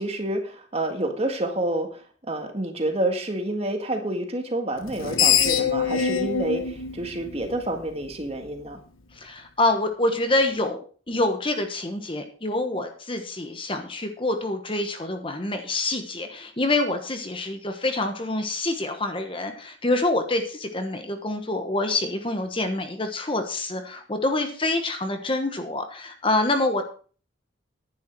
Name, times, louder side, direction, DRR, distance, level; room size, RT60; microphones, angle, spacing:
voice 1, 0.0-2.0 2.3-8.8, right 1 dB, 30° right, 5 dB, 1.8 m, -28 dB
Screech, 4.8-8.1, left 7 dB, 90° left, 1.4 m, -24 dB
voice 2, 9.1-10.8 11.1-27.0, left 2 dB, 25° left, 6 dB, 1.2 m, -26 dB
10.5 x 10.5 x 4.6 m, 0.41 s
head